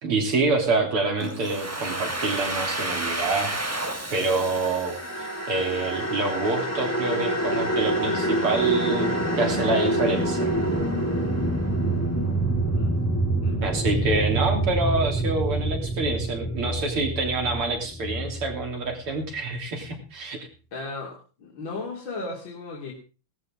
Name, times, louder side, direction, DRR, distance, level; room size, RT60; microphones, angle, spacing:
voice 1, 0.0-3.5 3.8-5.0 5.5-10.5 13.6-20.4, right 3 dB, 80° right, 2 dB, 4.0 m, -26 dB
Domestic sounds home sounds, 1.2-6.0, right 1 dB, 10° right, 0.7 m, -31 dB
sound 1, 4.1-19.4, right 1 dB, 5° left, 2.1 m, -26 dB
voice 2, 16.6-17.1 20.7-22.9, left 3 dB, 60° left, -2 dB, 3.4 m, -36 dB
17.5 x 13.5 x 3.7 m, 0.34 s
omnidirectional pair, 2.4 m